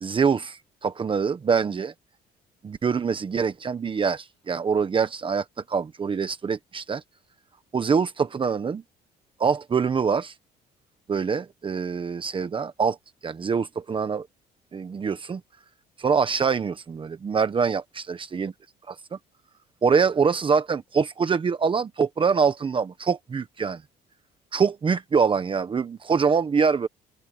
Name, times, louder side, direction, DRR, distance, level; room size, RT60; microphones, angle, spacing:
voice 1, 0.0-1.9 2.6-7.0 7.7-8.8 9.4-10.3 11.1-13.0 13.2-14.3 14.7-15.4 16.0-18.5 18.9-19.0 19.8-23.8 24.5-26.9, right 5 dB, 30° right, 1.2 m, -24 dB
open air
cardioid pair, 110°, 17 cm